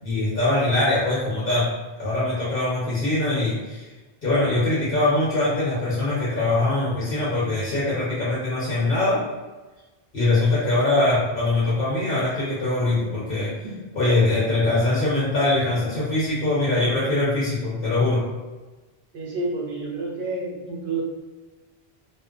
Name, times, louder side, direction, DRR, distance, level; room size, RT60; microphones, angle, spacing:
voice 1, 0.0-1.7 2.0-3.9 4.2-9.2 10.1-13.5 13.9-18.2, left 2 dB, 65° left, -8 dB, 1.1 m, -22 dB
voice 2, 19.1-21.0, right 3 dB, 80° right, -3 dB, 0.9 m, -29 dB
2.5 x 2.1 x 2.4 m, 1.2 s
omnidirectional pair, 1.0 m